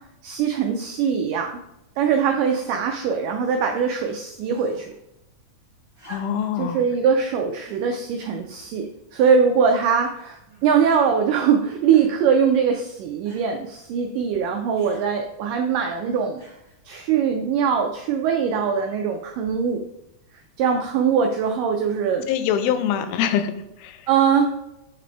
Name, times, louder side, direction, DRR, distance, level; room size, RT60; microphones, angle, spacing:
voice 1, 0.2-1.6 2.0-4.9 6.6-16.4 16.9-19.8 20.6-22.3 24.1-24.6, right 6 dB, 90° right, 4 dB, 1.8 m, -22 dB
sound 1, 4.5-5.0 5.9-6.6 7.6-7.9 8.6-8.7 9.2-9.6 10.5-11.0 11.9-12.3 13.2-13.5 14.7-15.1 16.4-16.8 17.9-18.0, right 1 dB, 20° right, 1.5 m, -46 dB
voice 2, 6.1-6.8 22.3-23.5 23.8-24.0, left 9 dB, 85° left, 9 dB, 2.4 m, -24 dB
8.1 x 3.8 x 3.4 m, 0.86 s
omnidirectional pair, 4.4 m